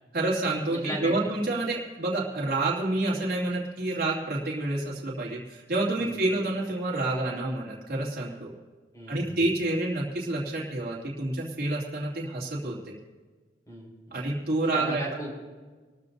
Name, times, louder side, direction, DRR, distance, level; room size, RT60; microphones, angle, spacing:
voice 1, 0.1-8.5 9.1-13.0 14.1-15.0, right 2 dB, 55° right, -5 dB, 2.7 m, -28 dB
voice 2, 0.7-1.3 5.9-6.2 8.9-9.4 13.6-14.2 14.7-15.3, equal, 20° left, -1 dB, 4.9 m, -37 dB
26.0 x 13.5 x 2.7 m, 1.4 s
head